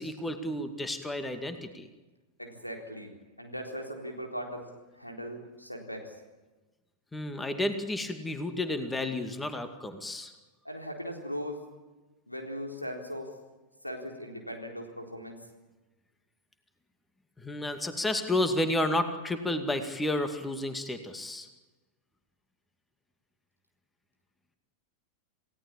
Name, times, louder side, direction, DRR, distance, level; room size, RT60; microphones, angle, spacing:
voice 1, 0.0-1.9 7.1-10.3 17.4-21.5, left 1 dB, 10° left, 8 dB, 2.3 m, -31 dB
voice 2, 2.4-3.1 3.4-4.7 4.9-6.1 10.6-11.6 12.3-13.3 13.8-15.4, equal, 90° left, 2 dB, 4.0 m, -39 dB
28.5 x 17.5 x 8.7 m, 1.2 s
figure-of-eight pair, 90°, 0 cm